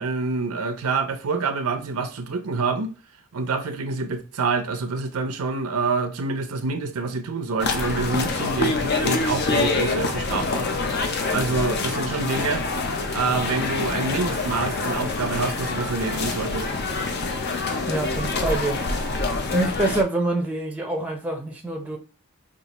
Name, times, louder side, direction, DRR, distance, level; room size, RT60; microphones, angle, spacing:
voice 1, 0.0-2.9 3.3-10.7 11.3-12.7 13.1-16.7, right 4 dB, 80° right, 0.6 m, -27 dB
sound 1, 7.6-20.0, left 3 dB, 45° left, 0.5 m, -26 dB
voice 2, 17.9-18.8 19.5-22.0, right 2 dB, 5° right, 0.6 m, -26 dB
5.3 x 2.5 x 2.9 m
head